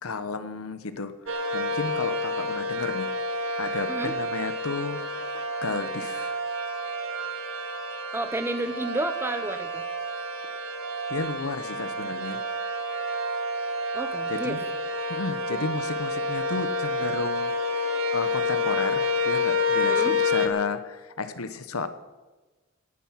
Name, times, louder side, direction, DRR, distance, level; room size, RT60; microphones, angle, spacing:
voice 1, 0.0-1.1 1.5-3.1 3.6-5.2 5.6-6.4 11.1-12.4 14.3-14.6 15.1-17.5 18.1-21.9, left 3 dB, 85° left, 11 dB, 1.1 m, -32 dB
sound 1, 1.3-20.5, left 2 dB, 65° right, 1.8 m, -29 dB
voice 2, 8.1-9.8 13.9-14.6 15.5-15.6 19.9-20.2, right 1 dB, 10° right, 9 dB, 0.9 m, -31 dB
18.5 x 10.5 x 5.8 m, 1.2 s
head